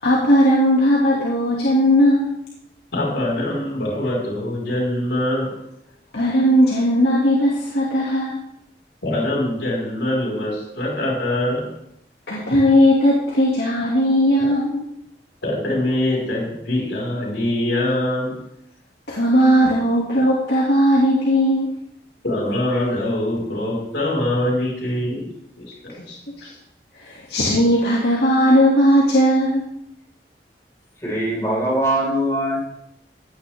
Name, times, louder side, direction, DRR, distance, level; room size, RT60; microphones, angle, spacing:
voice 1, 0.0-2.3 6.1-8.4 12.3-14.8 19.1-21.7 26.0-26.1 26.4-26.5 26.9-29.6, equal, 70° left, -5 dB, 2.6 m, -17 dB
voice 2, 2.9-5.5 9.0-11.7 15.4-18.4 22.2-25.2 25.6-26.5, left 1 dB, 85° left, -2 dB, 5.4 m, -23 dB
voice 3, 31.0-32.6, right 1 dB, 15° left, -5 dB, 5.2 m, -21 dB
16.5 x 9.8 x 3.7 m, 0.78 s
head